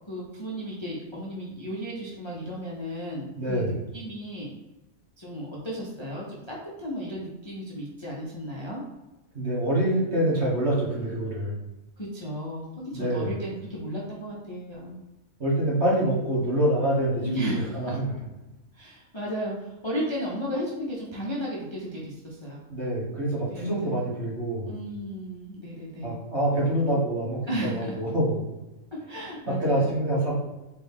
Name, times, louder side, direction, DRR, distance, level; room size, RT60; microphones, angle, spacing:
voice 1, 0.1-4.5 5.2-8.8 12.0-15.0 17.2-18.0 18.7-22.6 23.5-24.0 24.6-26.2 27.5-27.9 28.9-29.9, equal, 30° left, -5 dB, 0.6 m, -34 dB
voice 2, 3.4-3.8 9.3-11.5 12.9-13.3 15.4-18.1 22.7-24.8 26.0-28.4 29.5-30.3, right 1 dB, 50° right, -6 dB, 1.8 m, -26 dB
4.5 x 2.7 x 3.5 m, 1.0 s
omnidirectional pair, 1.4 m